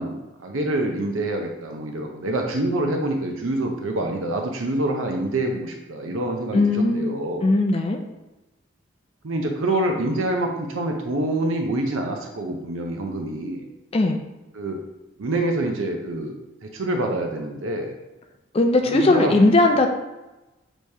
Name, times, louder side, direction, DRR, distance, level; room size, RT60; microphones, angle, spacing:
voice 1, 0.0-7.5 9.2-13.7 14.5-14.8 15.2-16.3 16.7-17.9 18.9-19.4, right 1 dB, 85° right, 2 dB, 0.6 m, -26 dB
voice 2, 6.5-7.1 7.4-8.0 13.9-14.2 18.5-19.9, left 2 dB, 30° left, 3 dB, 0.3 m, -18 dB
6.5 x 3.0 x 2.7 m, 1.0 s
head